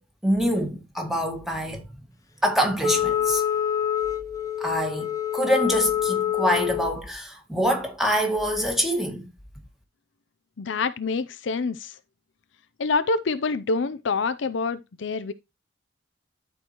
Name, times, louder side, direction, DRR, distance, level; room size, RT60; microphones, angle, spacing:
voice 1, 0.2-1.9 2.4-3.4 4.6-9.3, equal, ahead, 1.9 m, -25 dB
Wind instrument woodwind instrument, 2.8-6.9, left 10 dB, 20° left, 1.0 m, -26 dB
voice 2, 10.6-12.0 12.8-15.3, left 4 dB, 70° left, 0.5 m, -26 dB
12.5 x 4.7 x 3.0 m
head